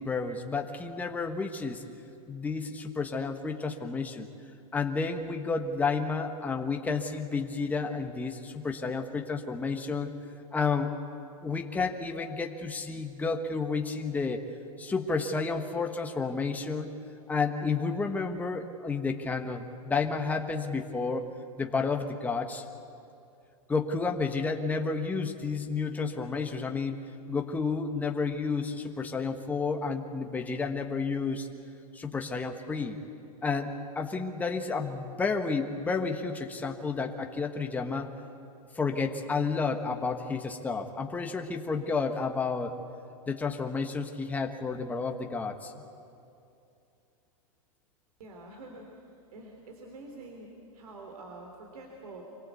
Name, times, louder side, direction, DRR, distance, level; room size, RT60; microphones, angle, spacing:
voice 1, 0.0-1.8 2.3-4.3 4.7-10.1 10.5-10.9 11.4-14.4 14.8-16.9 17.3-21.2 21.6-22.6 23.7-26.9 27.3-31.5 31.9-33.0 33.4-38.1 38.7-42.8 43.3-45.7, left 4 dB, 10° left, 4 dB, 1.2 m, -31 dB
voice 2, 48.2-48.8 49.3-50.5 50.7-52.2, right 2 dB, 75° right, 1 dB, 3.6 m, -46 dB
25.0 x 17.5 x 8.3 m, 2.7 s
hypercardioid pair, 145°, 19 cm